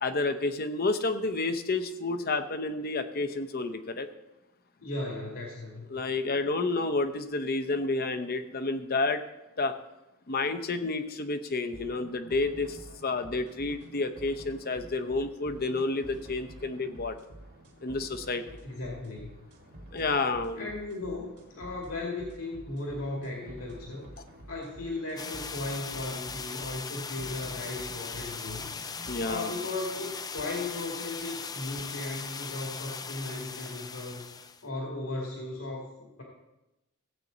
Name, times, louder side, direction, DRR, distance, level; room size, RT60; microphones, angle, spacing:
voice 1, 0.0-4.1 5.9-9.2 9.6-9.7 10.3-17.2 17.8-18.4 19.9-20.7 29.1-29.5, left 3 dB, 45° left, 9 dB, 0.8 m, -30 dB
voice 2, 4.8-5.9 18.6-19.4 20.6-24.1 24.5-36.2, left 2 dB, 70° left, -2 dB, 2.2 m, -37 dB
sound 1, 11.7-29.4, right 1 dB, 55° right, 2.0 m, -49 dB
sound 2, 25.2-34.6, left 5 dB, 15° left, 0.3 m, -39 dB
16.0 x 8.3 x 4.0 m, 0.95 s
head